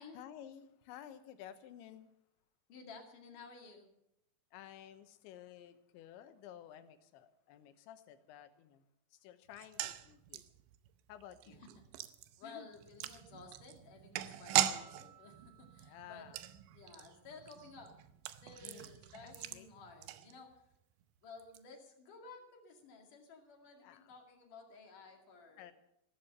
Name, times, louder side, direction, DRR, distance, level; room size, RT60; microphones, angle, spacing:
voice 1, 0.1-2.1 4.5-8.8 9.1-10.4 11.1-11.6 12.4-12.7 15.8-16.4 18.6-19.7 23.8-24.1 25.6-25.7, left 10 dB, 90° left, 10 dB, 3.4 m, -54 dB
voice 2, 2.7-3.9 11.5-11.9 12.4-16.3 16.7-20.6 21.2-25.7, left 4 dB, 50° left, 2 dB, 3.4 m, -54 dB
sound 1, 9.5-20.8 21.0-21.1 21.4-21.6, right 13 dB, 85° right, 3.0 m, -40 dB
Piano, 14.7-17.3, right 8 dB, 50° right, 5.5 m, -64 dB
15.5 x 12.5 x 6.7 m, 0.79 s
omnidirectional pair, 5.1 m